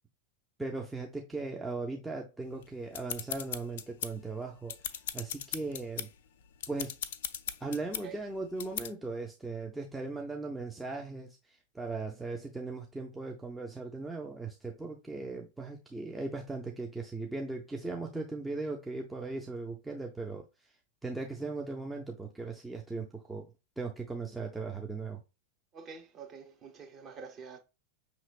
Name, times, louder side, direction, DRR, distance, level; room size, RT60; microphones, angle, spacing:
voice 1, 0.6-4.8 5.1-6.1 6.7-6.9 7.6-11.4 11.7-20.4 21.0-23.5 23.8-25.2, right 3 dB, 5° right, 0.6 m, -38 dB
sound 1, 2.6-4.3 4.6-6.1 6.5-8.0 8.6-8.9, left 9 dB, 55° left, 0.3 m, -38 dB
voice 2, 25.7-27.6, right 5 dB, 30° right, 1.1 m, -47 dB
5.6 x 3.0 x 2.4 m
figure-of-eight pair, 90°, 0 cm